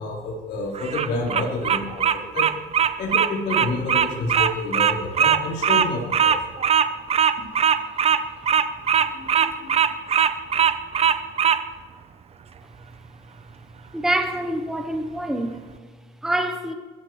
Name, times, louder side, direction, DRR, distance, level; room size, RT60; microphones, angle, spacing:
voice 1, 0.0-2.5 3.0-6.3 7.4-7.5 9.0-9.7, left 2 dB, 70° left, 4.3 m, -29 dB
Bird vocalization bird call bird song, 0.8-11.6, right 8 dB, 35° right, 0.8 m, -20 dB
voice 2, 13.9-15.6 16.2-16.7, right 1 dB, 5° right, 1.0 m, -25 dB
22.0 x 14.0 x 3.2 m
cardioid pair, 110°, 17 cm